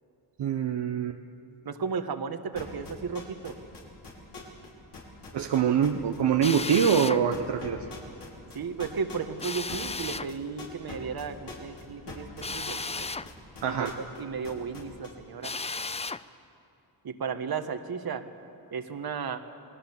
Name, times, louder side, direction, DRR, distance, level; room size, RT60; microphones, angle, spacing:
voice 1, 0.4-1.2 5.3-7.8 13.6-13.9, right 8 dB, 70° right, 4 dB, 1.1 m, -24 dB
voice 2, 1.6-3.6 8.5-13.1 13.6-15.5 17.0-18.2 18.7-19.4, right 6 dB, 55° right, 8 dB, 1.6 m, -34 dB
sound 1, 2.5-4.7 4.9-6.2 6.4-7.1 7.3-14.2 14.4-15.1, left 4 dB, 70° left, 5.9 m, -42 dB
Drill, 6.4-7.2 9.4-10.3 12.4-13.3 15.4-16.2, left 3 dB, 15° left, 0.5 m, -34 dB
28.5 x 21.0 x 7.2 m, 2.8 s
cardioid pair, 95°, 43 cm